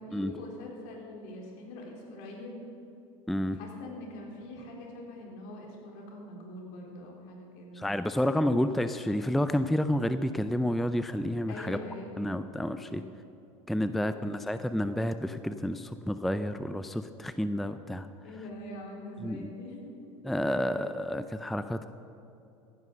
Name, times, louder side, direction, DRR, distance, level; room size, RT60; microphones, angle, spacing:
voice 1, 0.0-2.6 3.5-7.8 11.5-12.4 12.7-13.1 13.9-14.4 18.2-20.8, left 1 dB, 65° left, 0 dB, 3.9 m, -44 dB
voice 2, 3.3-3.6 7.8-11.8 12.2-13.0 13.7-18.1 19.2-19.5 20.2-21.9, left 1 dB, ahead, 11 dB, 0.5 m, -30 dB
15.0 x 10.5 x 6.7 m, 2.7 s
hypercardioid pair, 95°, 17 cm